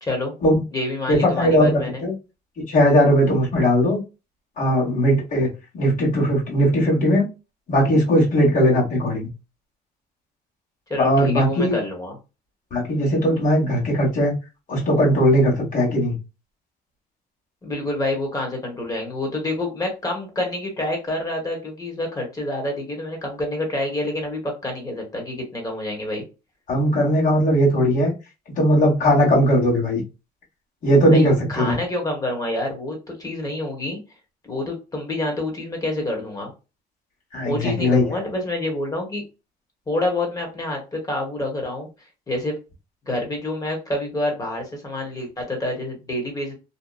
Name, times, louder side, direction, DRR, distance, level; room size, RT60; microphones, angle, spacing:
voice 1, 0.0-0.3 0.7-2.0 10.9-12.2 17.6-26.2 31.0-34.0 34.5-36.5 37.4-39.2 39.9-41.9 42.3-42.5 43.1-46.5, left 1 dB, 20° left, 1 dB, 1.2 m, -27 dB
voice 2, 1.1-2.1 2.7-4.0 4.6-5.5 5.7-7.3 7.7-9.3 11.0-11.7 12.7-14.3 14.7-16.1 26.7-28.1 28.6-30.0 30.8-31.8 37.3-38.0, equal, 50° left, -3 dB, 1.4 m, -18 dB
2.8 x 2.2 x 2.4 m, 0.29 s
cardioid pair, 110°, 17 cm